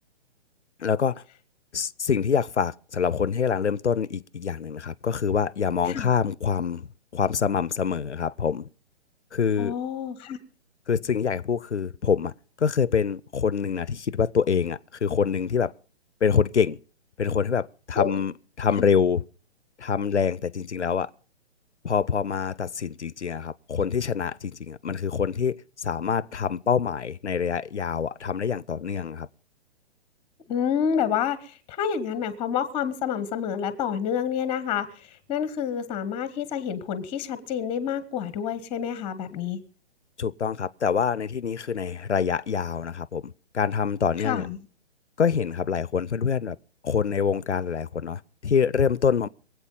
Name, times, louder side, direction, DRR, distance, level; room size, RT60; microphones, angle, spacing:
voice 1, 0.8-1.2 1.7-8.7 9.3-9.7 10.9-15.7 16.2-16.8 17.2-19.2 19.8-21.1 21.8-29.3 40.2-44.5 45.2-46.6 46.8-49.3, left 6 dB, 85° left, 0.7 m, -25 dB
voice 2, 9.6-10.4 17.9-18.1 18.8-18.9 30.5-39.6 44.2-44.6, left 8 dB, 15° left, 1.0 m, -28 dB
22.5 x 8.3 x 5.4 m
figure-of-eight pair, 130°, 34 cm